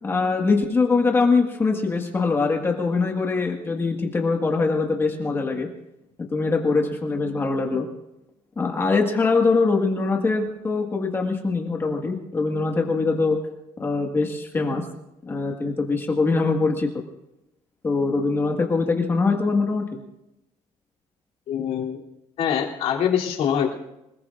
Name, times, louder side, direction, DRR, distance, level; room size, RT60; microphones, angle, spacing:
voice 1, 0.0-5.7 6.3-7.9 8.6-13.4 13.8-14.9 15.2-16.9 17.8-20.0, left 4 dB, 20° left, 1 dB, 1.8 m, -23 dB
voice 2, 21.5-22.0 22.4-23.8, left 8 dB, 60° left, -1 dB, 3.2 m, -24 dB
27.0 x 19.5 x 2.6 m, 0.88 s
cardioid pair, 180°, 12 cm